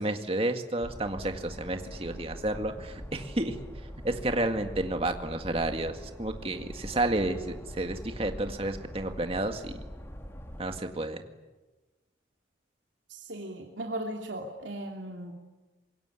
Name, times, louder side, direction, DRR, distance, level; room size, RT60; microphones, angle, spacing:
voice 1, 0.0-3.6 4.0-9.7 10.6-11.2, right 2 dB, 30° right, 6 dB, 2.0 m, -31 dB
sound 1, 0.8-10.8, equal, 15° left, 2.4 m, -43 dB
voice 2, 13.1-15.3, right 1 dB, 80° right, 1 dB, 3.0 m, -37 dB
25.5 x 22.0 x 10.0 m, 1.2 s
head